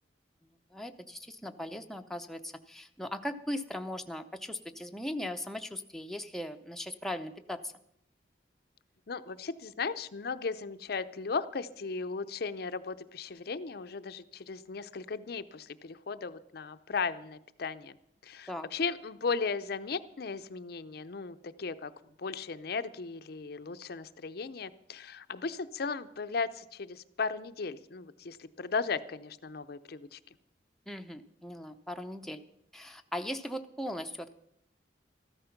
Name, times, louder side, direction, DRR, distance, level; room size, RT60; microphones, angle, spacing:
voice 1, 0.7-7.7 18.5-18.7 30.9-32.4 32.7-34.3, left 1 dB, ahead, 5 dB, 0.6 m, -39 dB
voice 2, 9.1-18.0 18.2-21.9 22.2-30.2, left 4 dB, 60° left, 11 dB, 0.6 m, -36 dB
14.0 x 12.5 x 5.8 m, 0.76 s
head